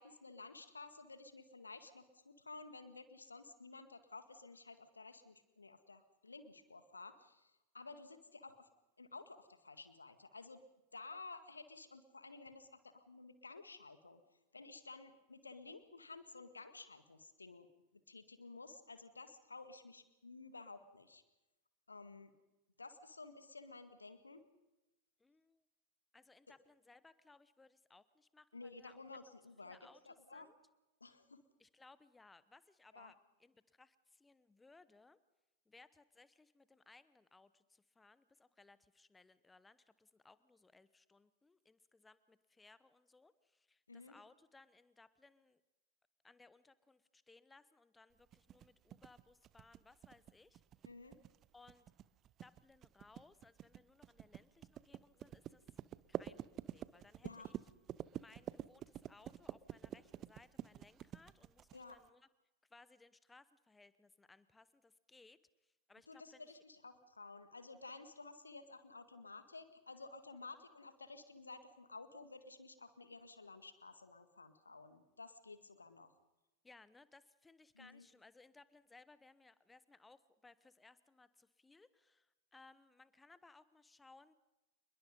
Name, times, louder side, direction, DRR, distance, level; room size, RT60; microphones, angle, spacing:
voice 1, 0.0-8.7 9.0-10.6 10.9-14.2 14.5-17.7 18.1-21.2 21.9-22.3 22.8-24.5 28.5-29.8 30.1-30.5 31.0-31.4 32.9-33.1 43.9-44.2 50.8-51.2 57.2-57.5 61.7-62.0 66.1-76.1 77.7-78.1, left 3 dB, 80° left, 11 dB, 1.9 m, -53 dB
voice 2, 25.2-25.6 26.1-29.0 29.6-30.6 31.6-35.2 35.7-45.6 46.2-50.6 51.5-51.9 52.4-55.8 56.1-57.5 58.2-62.3 62.7-65.4 65.6-66.5 76.6-84.3, left 3 dB, 10° left, 16 dB, 1.0 m, -64 dB
sound 1, 48.3-62.1, right 11 dB, 30° right, 0.7 m, -48 dB
27.5 x 21.5 x 5.5 m, 1.0 s
figure-of-eight pair, 90°, 0 cm